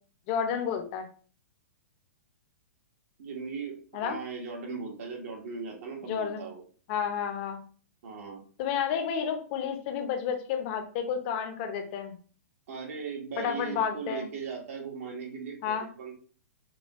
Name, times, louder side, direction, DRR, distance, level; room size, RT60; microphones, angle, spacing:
voice 1, 0.3-1.1 3.9-4.2 6.1-6.4 6.9-7.6 8.6-12.2 13.4-14.3 15.6-15.9, left 7 dB, 40° left, 5 dB, 0.7 m, -31 dB
voice 2, 3.2-6.6 8.0-8.4 12.7-16.2, right 5 dB, 60° right, 1 dB, 1.3 m, -38 dB
5.2 x 2.3 x 3.0 m, 0.42 s
hypercardioid pair, 145°, 9 cm